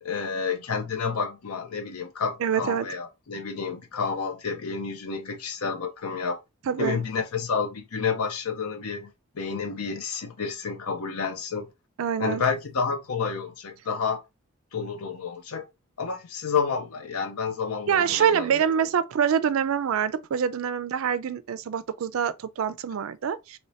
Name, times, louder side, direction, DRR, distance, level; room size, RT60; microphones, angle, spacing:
voice 1, 0.0-6.4 6.8-11.7 12.2-14.2 14.7-15.7 16.0-18.7, left 5 dB, 80° left, 0.6 m, -30 dB
voice 2, 2.4-2.9 6.7-7.0 12.0-12.4 17.9-23.6, right 8 dB, 65° right, 0.4 m, -25 dB
2.9 x 2.8 x 3.1 m
head